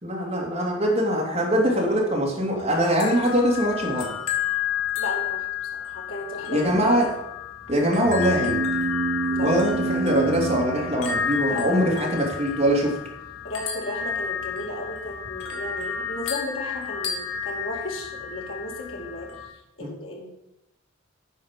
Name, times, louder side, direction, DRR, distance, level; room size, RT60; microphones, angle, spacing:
voice 1, 0.0-4.2 6.5-7.1 7.7-8.6 9.4-13.0 19.8-19.9, equal, 30° right, -2 dB, 2.6 m, -22 dB
sound 1, 2.6-19.5, left 8 dB, 85° left, 2.4 m, -31 dB
voice 2, 5.0-5.5 5.7-7.1 9.3-9.8 11.4-11.9 13.4-19.3 19.8-20.3, left 2 dB, 70° left, -1 dB, 2.5 m, -34 dB
sound 2, 8.0-11.7, right 4 dB, 45° right, 0.4 m, -28 dB
9.6 x 5.7 x 7.4 m, 0.87 s
head